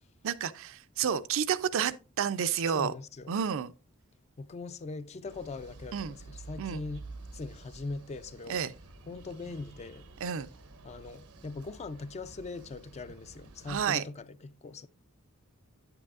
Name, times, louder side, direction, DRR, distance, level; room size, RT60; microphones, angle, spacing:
voice 1, 0.2-2.9 3.3-3.7 5.9-6.1 6.6-6.8 8.5-8.7 10.2-10.5 13.7-14.0, right 7 dB, 65° right, 0.4 m, -30 dB
voice 2, 2.7-3.3 4.4-8.6 9.1-10.0 10.8-14.9, left 3 dB, 30° left, 0.4 m, -41 dB
sound 1, 5.2-13.9, right 3 dB, 90° right, 0.9 m, -50 dB
8.8 x 8.1 x 2.4 m
head